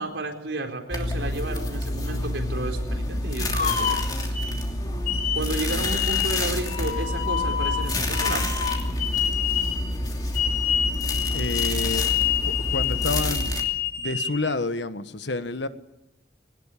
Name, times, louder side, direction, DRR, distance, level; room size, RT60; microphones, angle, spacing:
voice 1, 0.0-4.4 5.3-8.5, right 2 dB, 80° right, 4.3 m, -32 dB
sound 1, 0.9-13.6, left 1 dB, 20° left, 2.8 m, -28 dB
sound 2, 3.4-4.5 5.1-9.9 10.3-14.3, left 9 dB, 45° left, 7.0 m, -27 dB
voice 2, 11.3-12.1 12.4-13.5 14.0-15.7, left 3 dB, 70° left, 1.3 m, -29 dB
21.5 x 19.0 x 8.5 m
head